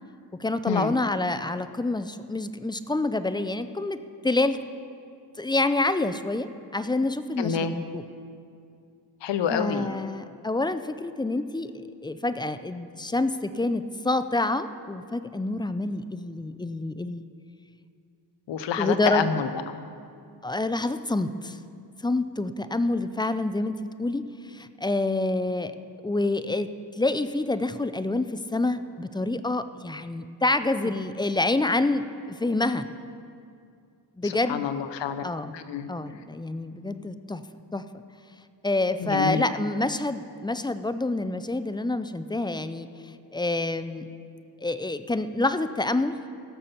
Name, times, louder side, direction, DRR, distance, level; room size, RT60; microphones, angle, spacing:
voice 1, 0.4-4.0 4.2-4.6 5.4-8.0 9.5-17.2 18.8-19.2 20.4-21.6 22.0-25.7 26.0-26.7 27.0-32.9 34.2-34.7 35.2-35.6 35.9-37.4 37.7-38.0 38.6-42.9 43.3-44.1 44.6-46.2, left 2 dB, 10° left, 12 dB, 0.4 m, -27 dB
voice 2, 7.4-7.7 9.2-9.9 18.5-19.5 34.2-35.3 35.5-35.9 39.0-39.4, left 7 dB, 90° left, 10 dB, 0.8 m, -27 dB
17.0 x 6.8 x 5.7 m, 2.4 s
cardioid pair, 80°, 42 cm